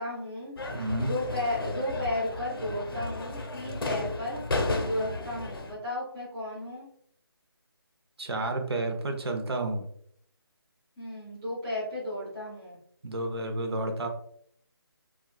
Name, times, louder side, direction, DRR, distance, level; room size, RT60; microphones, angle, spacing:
voice 1, 0.0-0.6 1.0-4.4 4.8-6.9 11.0-12.8, left 1 dB, 5° right, -11 dB, 0.5 m, -34 dB
sound 1, 0.6-5.7, left 2 dB, 60° left, 0.6 m, -33 dB
voice 2, 0.7-1.1 8.2-9.8 13.0-14.1, right 2 dB, 80° right, 3 dB, 0.7 m, -31 dB
3.3 x 2.3 x 2.2 m, 0.65 s
figure-of-eight pair, 170°, 13 cm